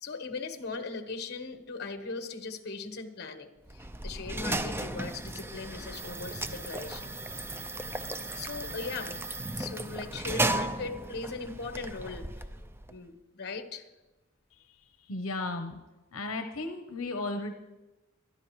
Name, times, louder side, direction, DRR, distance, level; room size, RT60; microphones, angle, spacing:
voice 1, 0.0-7.1 8.3-9.2 9.6-12.5 12.9-13.9, left 4 dB, 50° left, 5 dB, 1.3 m, -39 dB
sound 1, 3.7-13.0, right 2 dB, 10° right, 0.4 m, -35 dB
voice 2, 14.5-15.8 16.1-17.5, left 2 dB, 75° left, 6 dB, 0.9 m, -35 dB
26.0 x 11.0 x 3.2 m, 1.1 s
head